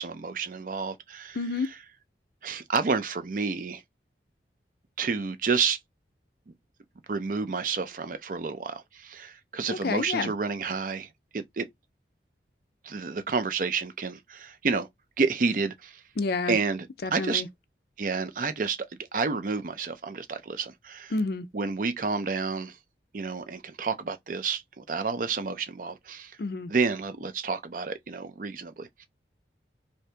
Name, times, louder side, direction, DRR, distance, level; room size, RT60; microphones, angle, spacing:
voice 1, 0.0-1.7 2.4-3.8 5.0-5.8 7.1-11.1 11.3-11.7 12.8-14.9 15.2-16.0 16.5-17.4 18.0-18.8 19.1-21.1 21.5-22.7 23.1-26.3 26.7-29.1, right 4 dB, 45° right, 0.5 m, -30 dB
voice 2, 1.4-1.7 9.7-10.3 16.2-16.6 17.0-17.5 21.1-21.5 26.4-26.7, left 3 dB, 55° left, 0.4 m, -29 dB
2.7 x 2.7 x 3.3 m
head